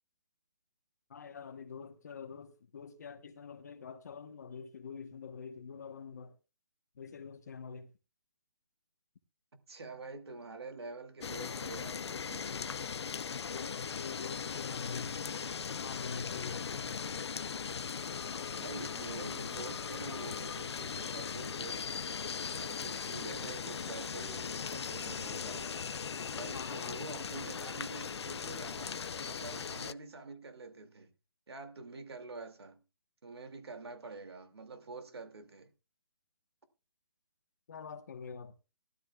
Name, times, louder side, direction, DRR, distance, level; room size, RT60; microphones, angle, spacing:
voice 1, 1.1-6.3 6.9-7.9 13.3-15.2 15.7-17.0 26.5-27.1 37.7-38.5, left 6 dB, 40° left, 1.2 m, -45 dB
voice 2, 9.7-12.6 18.6-21.9 22.6-25.8 26.3-31.1 31.5-32.8 33.2-35.7, right 3 dB, 70° right, 2.5 m, -47 dB
sound 1, 11.2-29.9, left 6 dB, 85° left, 0.6 m, -39 dB
19.5 x 12.5 x 2.4 m
hypercardioid pair, 175°, 14 cm